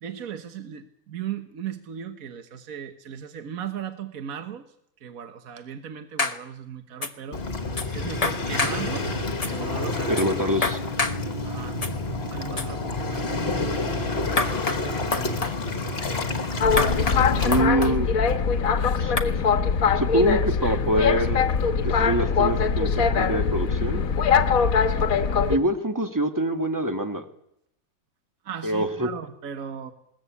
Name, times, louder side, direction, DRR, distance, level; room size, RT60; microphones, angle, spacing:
voice 1, 0.0-4.7 5.0-7.4 7.9-9.1 9.5-10.3 11.4-11.8 12.2-14.1 14.5-15.6 16.9-17.4 28.4-29.9, right 8 dB, 70° right, 8 dB, 1.7 m, -37 dB
sound 1, 6.2-6.4 7.0-7.1 7.8-7.9 8.2-8.8 9.4-9.5 10.2-10.3 10.6-11.2 11.8-11.9 12.6-12.7 14.4-14.8 15.1-15.5 16.8-17.2 17.5-17.9 19.2-19.3, left 3 dB, 25° left, 1.2 m, -26 dB
Waves surf, 7.3-17.6, left 3 dB, 45° left, 1.9 m, -29 dB
voice 2, 10.1-10.8 17.4-18.1 19.0-19.1 20.0-21.4 21.8-24.0 25.5-27.2 28.6-29.1, right 1 dB, 15° right, 6 dB, 1.8 m, -25 dB
Boat Water vehicle, 16.6-25.6, left 6 dB, 70° left, 1.5 m, -22 dB
21.0 x 20.0 x 8.4 m, 0.75 s
omnidirectional pair, 1.5 m